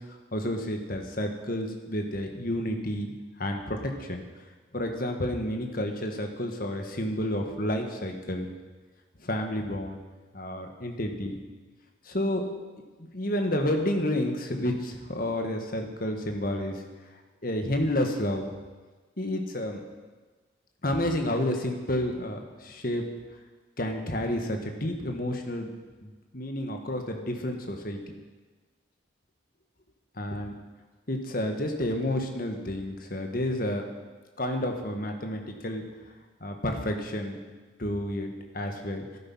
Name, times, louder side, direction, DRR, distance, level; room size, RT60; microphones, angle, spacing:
voice 1, 0.3-3.1 3.4-4.2 4.7-8.5 9.2-10.0 10.3-11.4 12.1-12.4 13.0-16.7 17.4-18.5 19.2-19.8 20.8-23.0 23.8-25.7 26.0-28.0 30.2-30.5 31.1-33.8 34.4-35.8 36.4-37.4 37.8-39.0, left 1 dB, 45° left, 4 dB, 1.7 m, -30 dB
14.0 x 12.0 x 5.7 m, 1.3 s
head